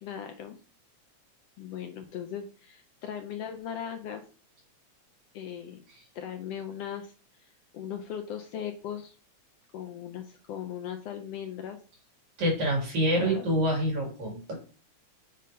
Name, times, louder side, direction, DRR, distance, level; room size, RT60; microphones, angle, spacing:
voice 1, 0.0-0.6 1.6-4.2 5.3-5.8 6.1-7.1 7.4-9.2 9.7-11.8 13.1-13.5, left 9 dB, 75° left, 5 dB, 1.5 m, -38 dB
voice 2, 12.4-14.6, right 1 dB, 75° right, -1 dB, 3.7 m, -26 dB
7.4 x 2.8 x 5.1 m, 0.37 s
omnidirectional pair, 3.3 m